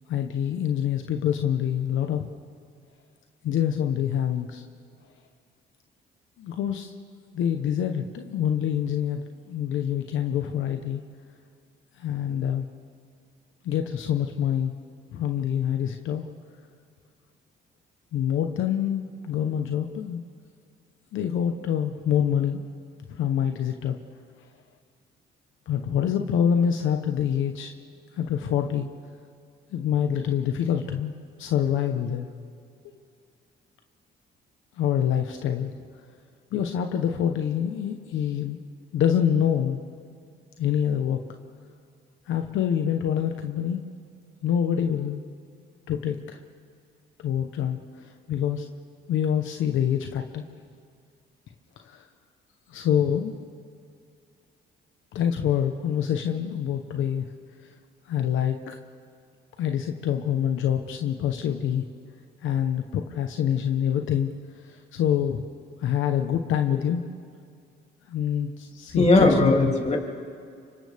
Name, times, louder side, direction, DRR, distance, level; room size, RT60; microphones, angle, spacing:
voice 1, 0.1-2.2 3.4-4.6 6.4-6.9 7.3-9.2 9.5-11.0 12.0-12.7 13.6-14.7 15.1-16.3 18.1-20.2 21.1-22.6 23.1-24.0 25.7-27.7 28.2-28.9 29.7-31.1 31.4-32.3 32.8-33.0 34.8-35.7 36.5-38.6 38.9-39.8 40.6-41.2 42.3-43.8 44.4-45.2 45.9-46.4 47.2-47.8 48.3-48.7 49.1-50.4 51.9-52.0 52.7-53.3 55.1-57.3 58.1-58.8 59.6-61.8 62.4-64.3 64.6-65.4 65.8-67.0 68.1-69.7, left 9 dB, 80° left, 5 dB, 1.1 m, -26 dB
voice 2, 68.9-70.0, left 2 dB, 35° left, 1 dB, 3.1 m, -19 dB
29.5 x 25.5 x 3.6 m, 2.3 s
cardioid pair, 90°, 20 cm